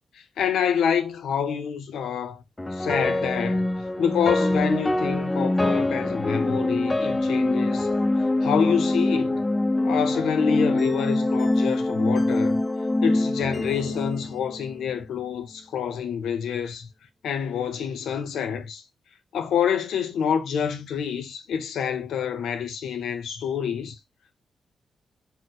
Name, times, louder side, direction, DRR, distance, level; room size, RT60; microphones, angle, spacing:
voice 1, 0.1-2.4 2.7-3.7 4.0-7.9 8.4-9.5 9.8-12.6 13.0-16.9 17.2-18.8 19.3-24.0, left 7 dB, 85° left, 0.5 m, -27 dB
sound 1, 2.6-14.9, left 2 dB, 15° left, 0.3 m, -24 dB
2.6 x 2.1 x 3.9 m
cardioid pair, 65°, 0 cm